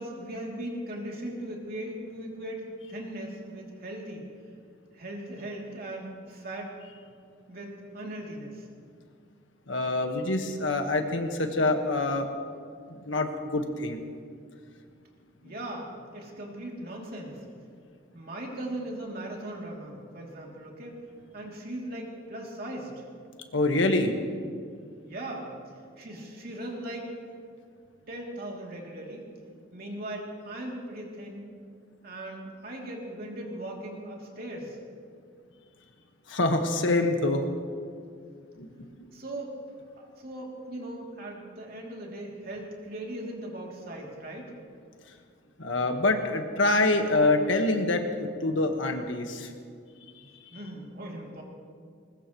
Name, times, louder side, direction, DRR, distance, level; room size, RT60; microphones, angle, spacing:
voice 1, 0.0-4.3 4.9-6.7 7.5-8.7 15.4-17.5 18.1-21.0 21.3-23.0 25.0-25.5 26.0-27.1 28.1-29.3 29.7-31.4 32.0-34.8 39.1-39.5 39.9-44.5 50.5-51.4, right 1 dB, 50° right, -1 dB, 2.9 m, -38 dB
voice 2, 9.7-12.3 12.9-14.0 23.5-24.1 36.3-37.4 38.6-38.9 45.6-49.5, left 2 dB, 85° left, 5 dB, 1.5 m, -26 dB
21.0 x 20.0 x 3.1 m, 2.2 s
head